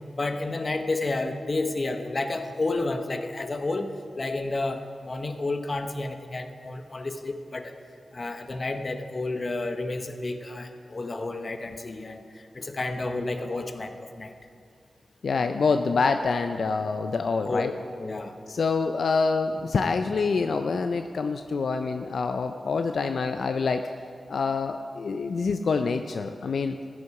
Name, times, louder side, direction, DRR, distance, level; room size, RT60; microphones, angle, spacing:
voice 1, 0.1-3.9 4.2-7.7 8.1-14.3 17.4-18.3, left 2 dB, 40° left, 7 dB, 0.9 m, -31 dB
voice 2, 15.2-17.7 18.5-23.9 24.3-26.8, left 4 dB, 75° left, 7 dB, 0.4 m, -26 dB
14.5 x 9.7 x 4.8 m, 2.3 s
cardioid pair, 75°, 0 cm